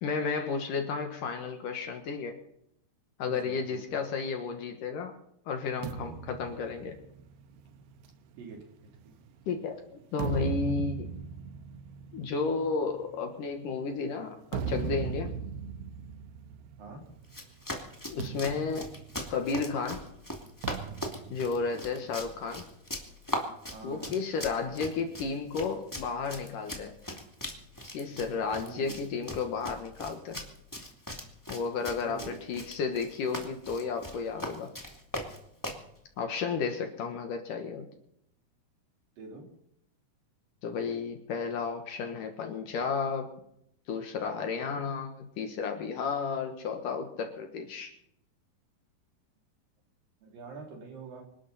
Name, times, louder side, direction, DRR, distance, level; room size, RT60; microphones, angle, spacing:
voice 1, 0.0-2.4 3.2-5.1 5.5-7.0 9.5-9.8 10.1-11.1 12.1-15.4 18.1-18.9 19.3-20.1 21.3-22.7 23.8-26.9 27.9-30.4 31.5-34.7 36.2-37.9 40.6-43.3 43.9-47.9, left 5 dB, 65° left, 4 dB, 2.7 m, -32 dB
voice 2, 3.3-3.6 3.9-4.0 8.4-8.6 9.0-9.1 16.8-17.0 22.0-22.1 23.7-24.1 28.6-29.1 32.0-32.4 39.2-39.4 44.6-44.8 50.2-51.2, right 4 dB, 60° right, 1 dB, 4.6 m, -45 dB
sound 1, 5.8-9.4 9.9-17.4 17.6-17.9 18.2-19.8 20.6-22.4, right 7 dB, 85° right, 2.9 m, -39 dB
Run, 17.2-35.9, equal, 10° left, 1.2 m, -40 dB
26.0 x 12.0 x 4.1 m, 0.76 s
omnidirectional pair, 4.6 m